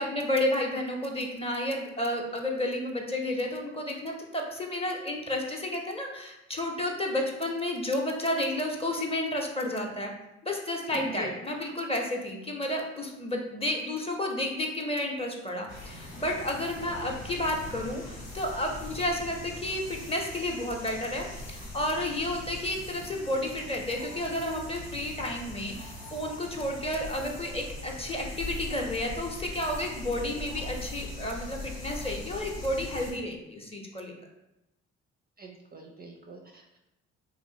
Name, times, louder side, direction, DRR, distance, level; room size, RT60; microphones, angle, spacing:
voice 1, 0.0-10.1 10.4-34.1, left 1 dB, 15° left, 1 dB, 0.6 m, -31 dB
voice 2, 10.9-11.4 30.4-30.5 35.4-36.8, right 1 dB, 30° right, 1 dB, 0.4 m, -42 dB
sound 1, 15.7-33.1, left 2 dB, 85° left, 1.0 m, -41 dB
3.0 x 2.5 x 2.7 m, 0.90 s
hypercardioid pair, 50°, 33 cm